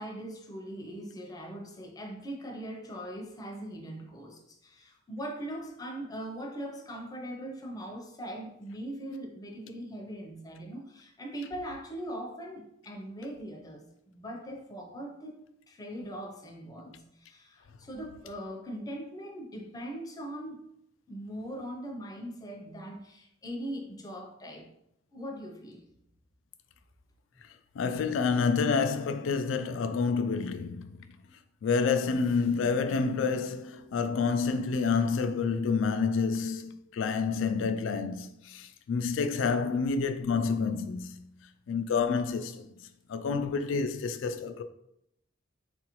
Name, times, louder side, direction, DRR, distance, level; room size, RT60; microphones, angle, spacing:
voice 1, 0.0-20.7 21.1-24.7 25.1-25.9, right 1 dB, 20° left, 0.5 m, -41 dB
voice 2, 27.8-31.0 31.6-41.2 41.7-42.7 43.1-44.6, left 5 dB, 90° left, 0.3 m, -28 dB
3.8 x 2.5 x 2.9 m
head